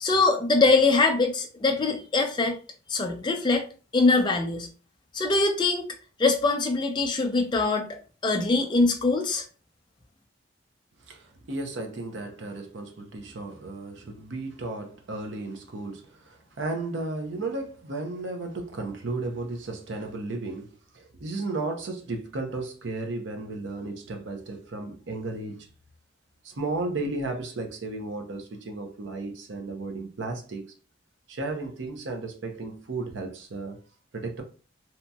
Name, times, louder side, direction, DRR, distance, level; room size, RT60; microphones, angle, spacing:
voice 1, 0.0-2.6 2.9-3.6 3.9-4.7 5.1-5.9 6.2-7.9 8.2-9.4, left 3 dB, 25° left, 0.4 m, -23 dB
voice 2, 11.1-25.7 26.4-30.7 31.3-33.8 34.1-34.4, right 2 dB, 70° right, 0.6 m, -34 dB
2.9 x 2.7 x 2.3 m
head